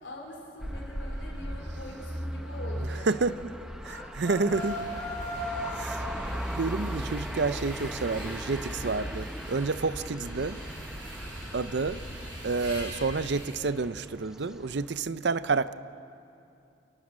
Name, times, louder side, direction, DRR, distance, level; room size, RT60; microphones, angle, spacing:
voice 1, 0.0-3.3, left 1 dB, 75° left, -1 dB, 3.5 m, -43 dB
sound 1, 0.6-15.0, equal, 5° right, 0.7 m, -39 dB
voice 2, 3.1-3.5 3.8-4.8 5.8-6.0 6.5-10.6 11.5-12.0 12.4-15.7, right 4 dB, 65° right, 14 dB, 0.6 m, -29 dB
sound 2, 3.8-6.0, left 1 dB, 15° left, 1.6 m, -36 dB
sound 3, 4.5-13.5, equal, 85° right, 5.8 m, -41 dB
29.0 x 18.0 x 6.3 m, 2.6 s
head